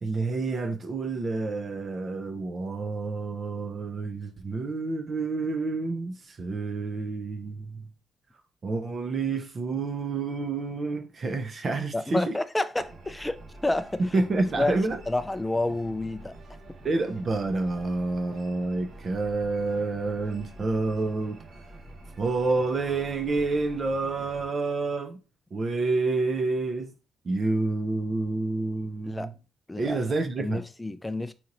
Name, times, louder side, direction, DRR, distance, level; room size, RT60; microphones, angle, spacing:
voice 1, 0.0-7.9 8.6-12.3 14.1-15.0 16.8-21.4 22.2-25.2 25.5-26.9 27.2-29.3 29.8-30.6, right 3 dB, 40° right, 0.5 m, -28 dB
voice 2, 11.9-14.0 14.6-14.8 15.1-16.4 29.1-29.3 29.7-30.0 30.4-31.3, left 2 dB, 10° left, 0.4 m, -29 dB
sound 1, 12.7-24.5, right 2 dB, 60° right, 1.2 m, -47 dB
4.2 x 2.8 x 2.6 m
cardioid pair, 90°, 0 cm